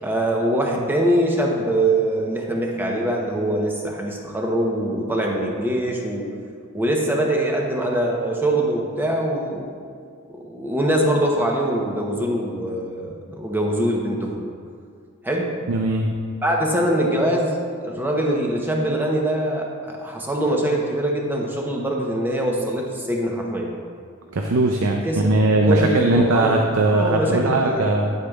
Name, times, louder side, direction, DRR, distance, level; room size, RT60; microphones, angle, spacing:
voice 1, 0.0-6.3 6.7-9.7 10.3-14.4 15.2-15.5 16.4-23.7 25.0-25.3 25.6-27.9, right 1 dB, 10° right, -1 dB, 0.9 m, -23 dB
voice 2, 15.7-16.1 24.3-28.1, right 2 dB, 75° right, 2 dB, 0.6 m, -19 dB
10.5 x 8.1 x 2.4 m, 2.1 s
head